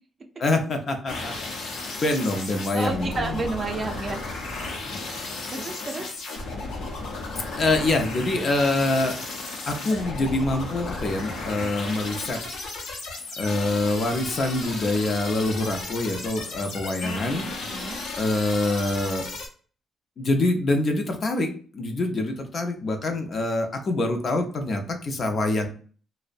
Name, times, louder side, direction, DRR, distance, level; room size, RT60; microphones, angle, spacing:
voice 1, 0.4-1.3 1.7-3.5 7.6-9.2 9.7-12.4 13.4-19.2 20.2-25.7, left 2 dB, 45° left, 4 dB, 0.5 m, -25 dB
sound 1, 1.1-19.5, left 3 dB, 90° left, 0.7 m, -34 dB
voice 2, 2.7-4.3 5.5-6.1 17.7-18.0, right 3 dB, 35° right, 4 dB, 0.5 m, -30 dB
2.6 x 2.0 x 2.4 m, 0.41 s
cardioid pair, 110°, 0 cm